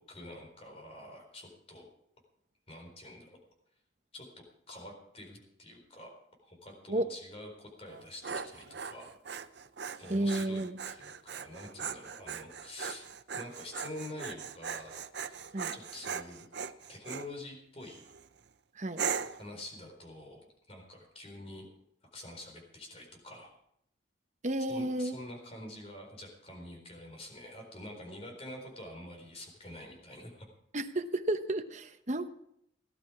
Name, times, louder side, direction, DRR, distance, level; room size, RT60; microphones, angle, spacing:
voice 1, 0.1-1.9 2.7-3.4 4.1-6.1 6.4-9.1 10.0-13.1 13.3-15.0 15.7-16.5 16.9-18.1 19.3-21.7 22.1-23.5 24.7-30.5, left 1 dB, 30° left, 2 dB, 4.1 m, -47 dB
Dog, 7.9-17.3 17.8-18.3 19.0-19.5, right 6 dB, 60° right, 0.6 m, -39 dB
voice 2, 10.1-10.8 15.5-15.7 18.7-19.0 24.4-25.2 30.7-32.3, right 1 dB, 40° right, 8 dB, 1.0 m, -32 dB
17.0 x 11.5 x 4.9 m, 0.74 s
head